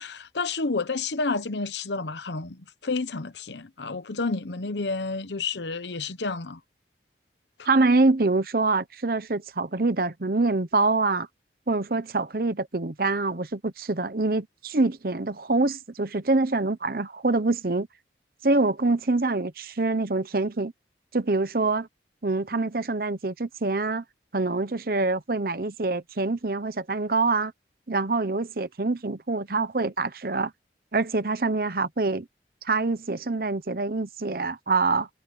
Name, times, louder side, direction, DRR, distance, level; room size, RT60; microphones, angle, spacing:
voice 1, 0.0-6.6 7.6-7.7, left 3 dB, 80° left, 1.0 m, -30 dB
voice 2, 7.6-11.3 11.7-17.9 18.4-20.7 21.1-21.9 22.2-24.0 24.3-27.5 27.9-30.5 30.9-32.3 32.6-35.1, right 3 dB, 55° right, 0.9 m, -25 dB
head